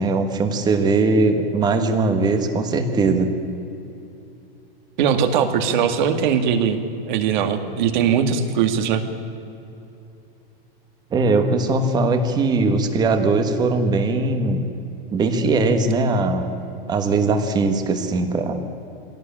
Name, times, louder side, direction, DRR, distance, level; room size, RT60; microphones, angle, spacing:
voice 1, 0.0-3.3 11.1-14.6 15.1-16.5 16.9-18.6, right 3 dB, 15° right, 7 dB, 1.4 m, -20 dB
voice 2, 5.0-9.0, right 7 dB, 50° right, 7 dB, 2.1 m, -20 dB
24.0 x 17.5 x 8.8 m, 2.8 s
supercardioid pair, 175°, 30 cm